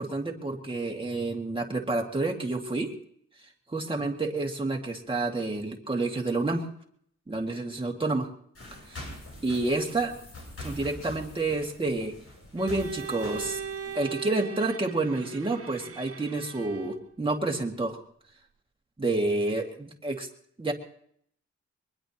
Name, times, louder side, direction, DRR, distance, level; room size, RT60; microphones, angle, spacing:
voice 1, 0.0-2.9 3.7-6.6 7.3-8.3 8.9-9.0 9.4-10.1 10.6-12.1 12.5-13.6 13.9-18.0 19.0-20.3 20.6-20.7, right 2 dB, 20° right, 1 dB, 2.1 m, -29 dB
sound 1, 8.5-13.9, left 1 dB, 50° left, 7.9 m, -44 dB
Bowed string instrument, 12.6-17.1, right 7 dB, 50° right, 0.9 m, -39 dB
23.0 x 20.5 x 3.0 m, 0.66 s
wide cardioid pair, 155°, 29 cm